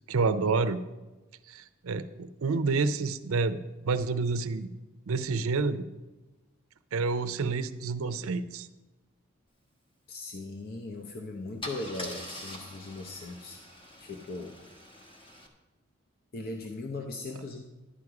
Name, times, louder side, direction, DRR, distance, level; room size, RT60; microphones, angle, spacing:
voice 1, 0.1-0.8 1.5-4.7 5.1-5.9 6.9-8.7, right 4 dB, 75° right, 12 dB, 0.5 m, -29 dB
voice 2, 10.1-13.6 14.0-14.6 16.3-17.6, left 2 dB, 45° left, 3 dB, 0.7 m, -39 dB
Car / Engine starting / Idling, 10.9-11.1 11.6-15.5, left 1 dB, 25° left, 1.3 m, -44 dB
11.5 x 9.4 x 4.8 m, 1.1 s
head